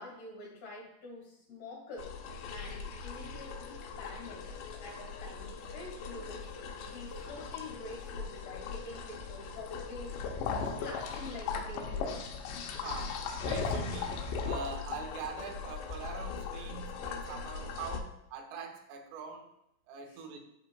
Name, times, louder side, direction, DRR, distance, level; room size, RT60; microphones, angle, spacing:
voice 1, 0.0-2.2 2.5-4.5 4.8-6.5 6.8-10.5 10.8-12.3 20.1-20.2, left 2 dB, 50° left, -2 dB, 2.5 m, -47 dB
sound 1, 2.0-18.0, left 5 dB, 80° left, 3.0 m, -39 dB
voice 2, 12.8-19.5 19.9-20.4, right 5 dB, 80° right, 4 dB, 2.7 m, -43 dB
12.0 x 5.5 x 2.3 m, 0.80 s
omnidirectional pair, 5.1 m